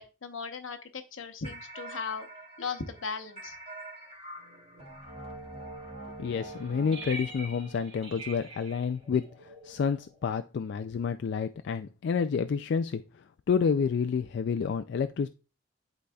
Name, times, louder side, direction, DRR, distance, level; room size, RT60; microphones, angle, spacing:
voice 1, 0.0-2.3 2.6-3.6, left 5 dB, 85° left, 0.9 m, -37 dB
sound 1, 1.4-10.3, right 2 dB, 35° right, 3.0 m, -44 dB
voice 2, 6.2-13.0 13.5-15.3, left 6 dB, 60° left, 0.3 m, -29 dB
11.5 x 4.0 x 2.3 m
head